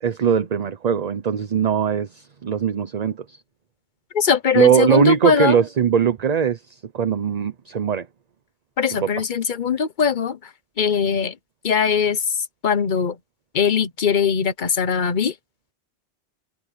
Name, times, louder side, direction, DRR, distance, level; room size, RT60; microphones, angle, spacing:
voice 1, 0.0-3.4 4.5-8.1 9.0-9.1, right 7 dB, 40° right, 0.8 m, -20 dB
voice 2, 4.1-5.6 8.8-10.4 10.8-11.3 11.6-12.2 12.6-13.2 13.5-15.3, left 6 dB, 50° left, 1.1 m, -21 dB
omnidirectional pair, 1.1 m